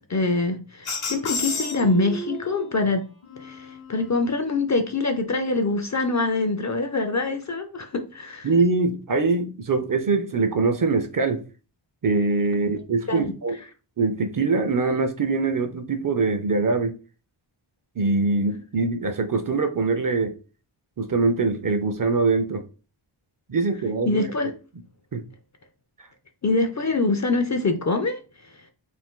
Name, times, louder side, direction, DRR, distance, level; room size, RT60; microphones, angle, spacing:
voice 1, 0.1-3.1 3.4-8.5 13.1-13.3 24.0-24.5 26.4-28.2, left 3 dB, 40° left, 0.4 m, -24 dB
sound 1, 0.8-2.6 3.2-4.3, left 2 dB, 75° left, 0.9 m, -32 dB
voice 2, 8.4-11.4 12.0-13.6 14.0-17.0 18.0-20.3 21.0-22.6 23.5-24.2 25.1-25.2, right 3 dB, 45° right, 0.5 m, -23 dB
2.6 x 2.5 x 3.6 m
wide cardioid pair, 75°, 50 cm